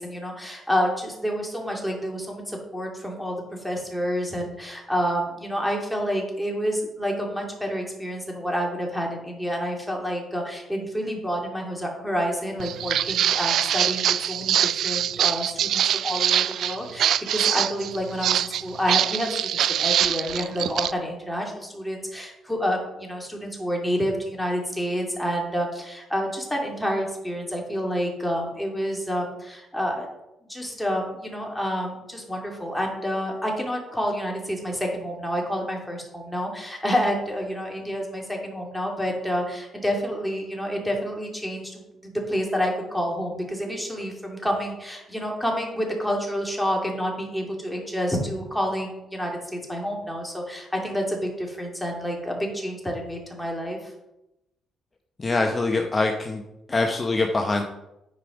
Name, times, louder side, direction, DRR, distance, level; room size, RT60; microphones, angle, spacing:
voice 1, 0.0-30.1 30.5-53.9, equal, 5° left, -1 dB, 2.4 m, -28 dB
Walk footsteps, 12.6-20.9, right 10 dB, 70° right, 0.3 m, -24 dB
voice 2, 55.2-56.4 56.7-57.6, left 3 dB, 25° left, 3 dB, 0.8 m, -23 dB
9.5 x 5.0 x 5.0 m, 0.90 s
cardioid pair, 90°, 0 cm